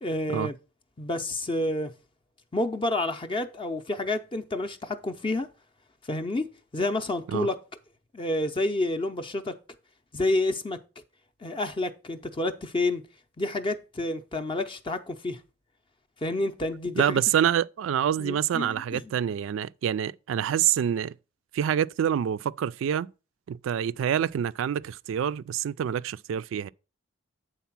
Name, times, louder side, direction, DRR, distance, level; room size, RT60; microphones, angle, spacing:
voice 1, 0.0-0.5 1.0-1.9 2.5-5.5 6.1-7.6 8.1-9.6 10.1-10.8 11.4-13.1 13.4-15.4 16.2-17.2 18.2-19.2, left 2 dB, 25° left, 0.5 m, -29 dB
voice 2, 17.0-21.1 21.5-23.1 23.5-26.7, right 9 dB, 70° right, 0.3 m, -26 dB
8.2 x 3.9 x 5.8 m
head